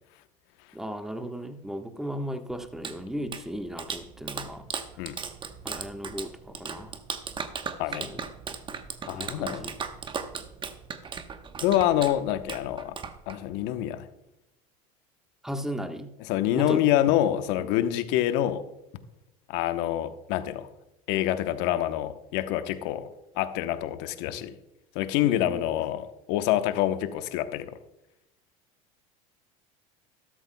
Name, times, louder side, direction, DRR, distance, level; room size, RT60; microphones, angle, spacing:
voice 1, 0.7-4.6 5.6-7.0 8.0-8.2 9.1-9.7 15.4-16.1 16.5-16.8 17.6-17.7 25.2-25.6, equal, ahead, 6 dB, 1.2 m, -36 dB
Clapping, 2.5-13.7, right 6 dB, 25° right, 1.0 m, -37 dB
voice 2, 9.1-9.7 11.6-12.9 13.3-14.1 16.3-18.6 19.5-20.7 21.1-23.1 23.4-24.6 24.9-27.7, left 12 dB, 65° left, 10 dB, 0.9 m, -26 dB
13.0 x 13.0 x 2.2 m, 0.91 s
hypercardioid pair, 90°, 19 cm